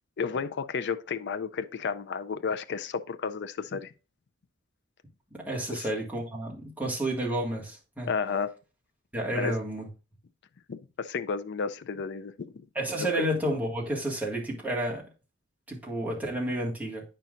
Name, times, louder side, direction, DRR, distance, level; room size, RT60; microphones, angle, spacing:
voice 1, 0.2-3.9 5.7-5.9 8.1-8.5 9.3-9.5 10.7-12.6 13.1-13.3, left 5 dB, 60° left, 0.5 m, -32 dB
voice 2, 5.4-8.1 9.1-9.9 12.7-15.0 15.7-17.0, right 1 dB, 10° right, 1.8 m, -30 dB
9.0 x 5.7 x 2.5 m
head